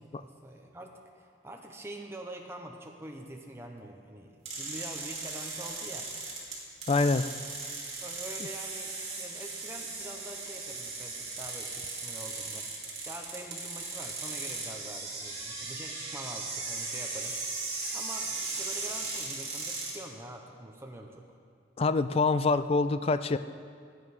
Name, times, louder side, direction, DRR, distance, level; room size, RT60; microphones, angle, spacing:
voice 1, 0.0-6.1 8.0-12.7 13.0-17.4 17.9-21.2, right 1 dB, 15° right, 1 dB, 0.8 m, -45 dB
sound 1, 4.5-20.0, right 3 dB, 35° right, 2.7 m, -37 dB
voice 2, 6.9-7.3 21.8-23.4, left 3 dB, 30° left, 12 dB, 0.4 m, -25 dB
16.0 x 9.3 x 4.9 m, 2.2 s
head